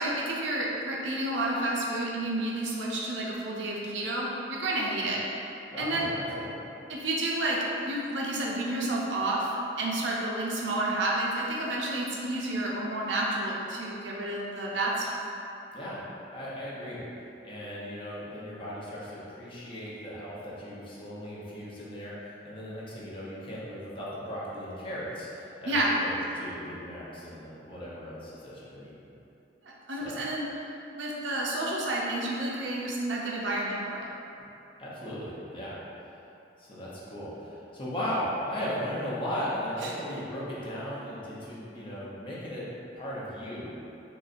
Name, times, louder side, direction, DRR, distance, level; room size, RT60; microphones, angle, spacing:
voice 1, 0.0-5.2 5.8-6.1 6.9-9.5 9.8-15.2 25.7-26.0 29.9-30.4 30.9-34.1 39.8-39.9, right 1 dB, 80° right, -4 dB, 0.6 m, -30 dB
voice 2, 5.7-6.7 15.7-16.0 16.3-17.0 17.4-28.9 30.0-30.2 34.8-35.8 36.6-42.6 42.9-43.7, equal, 30° left, -8 dB, 0.7 m, -37 dB
3.8 x 3.0 x 2.5 m, 2.9 s
head